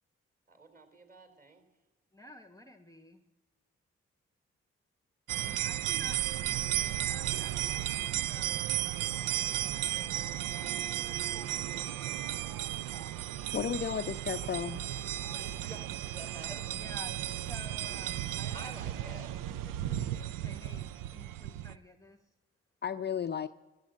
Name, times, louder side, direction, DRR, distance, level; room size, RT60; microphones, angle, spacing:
voice 1, 0.5-1.7 15.3-16.7 18.5-19.3, right 2 dB, 25° right, 6 dB, 4.0 m, -50 dB
voice 2, 2.1-3.2 5.4-7.9 8.3-8.6 9.5-12.6 16.8-22.3, left 1 dB, 10° left, 7 dB, 1.0 m, -53 dB
sound 1, 5.3-21.8, right 12 dB, 75° right, 0.5 m, -34 dB
voice 3, 13.5-14.8 22.8-23.5, left 7 dB, 30° left, 9 dB, 0.5 m, -33 dB
14.0 x 8.2 x 7.8 m, 1.2 s
hypercardioid pair, 45°, 33 cm